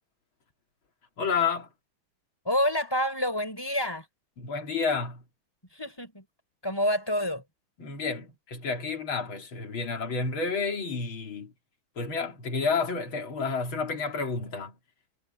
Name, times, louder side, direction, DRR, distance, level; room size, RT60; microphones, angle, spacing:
voice 1, 1.2-1.7 4.4-5.2 7.8-11.5 12.0-14.8, left 4 dB, 75° left, 3.6 m, -30 dB
voice 2, 2.4-4.1 5.7-6.2 6.6-7.4, equal, 10° left, 5.7 m, -28 dB
omnidirectional pair, 2.2 m